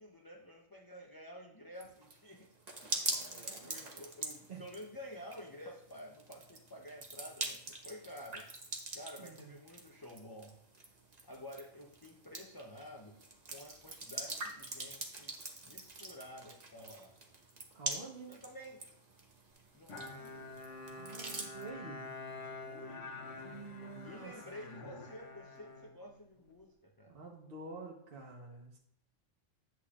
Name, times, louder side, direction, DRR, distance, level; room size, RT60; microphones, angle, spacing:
voice 1, 0.0-2.5 2.8-8.5 8.9-10.6 11.2-13.2 13.5-15.4 15.6-17.2 18.3-18.9 19.7-20.6 22.6-23.1 24.0-27.2, equal, 20° left, 0 dB, 0.6 m, -51 dB
sound 1, 1.8-21.7, right 2 dB, 35° right, 1.1 m, -44 dB
voice 2, 2.8-4.0 4.5-4.6 9.2-9.6 17.7-18.3 20.9-22.1 23.4-24.3 24.6-25.0 27.1-28.8, right 4 dB, 50° right, -1 dB, 1.3 m, -49 dB
Bowed string instrument, 19.9-26.6, left 3 dB, 70° left, 1.3 m, -47 dB
10.5 x 8.3 x 2.4 m, 0.72 s
omnidirectional pair, 1.3 m